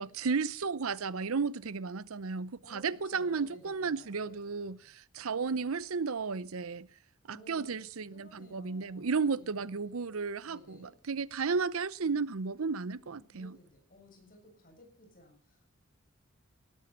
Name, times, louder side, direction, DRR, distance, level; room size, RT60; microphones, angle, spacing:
voice 1, 0.0-6.9 7.3-13.6, right 5 dB, 75° right, 0.7 m, -33 dB
voice 2, 2.6-4.9 7.3-7.8 8.1-10.1 10.4-11.0 12.7-15.7, left 1 dB, 40° left, 7.1 m, -57 dB
18.5 x 13.0 x 5.6 m
head